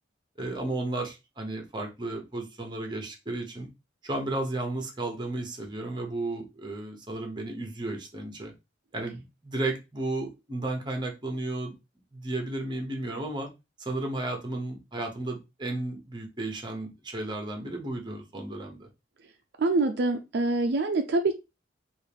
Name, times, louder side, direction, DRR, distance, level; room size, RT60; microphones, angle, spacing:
voice 1, 0.4-3.7 4.0-8.5 8.9-11.7 12.1-13.5 13.8-18.9, right 2 dB, 25° right, 3 dB, 0.9 m, -33 dB
voice 2, 19.6-21.4, right 2 dB, 65° right, 5 dB, 0.4 m, -25 dB
3.6 x 2.5 x 3.4 m, 0.25 s
head